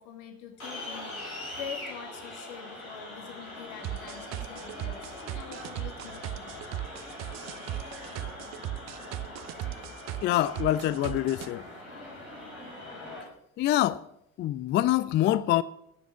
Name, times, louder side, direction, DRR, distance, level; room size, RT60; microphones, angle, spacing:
voice 1, 0.0-6.8 7.0-7.1, left 7 dB, 60° left, 2.1 m, -45 dB
sound 1, 0.6-13.2, left 1 dB, 85° left, 2.9 m, -42 dB
sound 2, 3.8-11.5, right 15 dB, 40° right, 0.6 m, -37 dB
voice 2, 10.2-11.6 13.6-14.0 14.4-15.6, left 13 dB, 30° left, 0.4 m, -25 dB
11.5 x 7.2 x 7.0 m
figure-of-eight pair, 60°, 41 cm